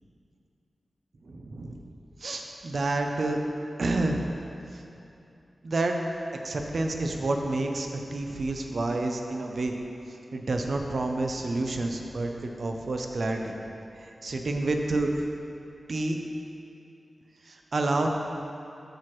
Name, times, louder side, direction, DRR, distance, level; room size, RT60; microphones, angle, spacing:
voice 1, 1.2-1.8 2.2-3.4 3.8-4.2 4.7-4.8 5.6-6.0 6.3-9.8 10.3-13.5 14.0-15.2 15.9-16.2 17.4-18.1, right 2 dB, 60° right, 3 dB, 0.6 m, -29 dB
13.0 x 4.6 x 3.1 m, 2.7 s
wide cardioid pair, 120°, 0 cm